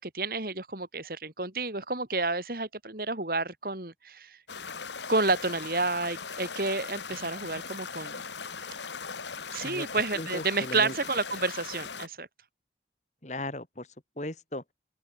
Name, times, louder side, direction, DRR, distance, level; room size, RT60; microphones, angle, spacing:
voice 1, 0.0-4.4 5.1-8.2 9.5-12.3, right 3 dB, 55° right, 3.4 m, -30 dB
sound 1, 4.5-12.1, left 5 dB, 90° left, 2.6 m, -39 dB
voice 2, 10.1-10.9 13.2-13.9 14.2-14.6, left 1 dB, 40° left, 3.2 m, -37 dB
open air
head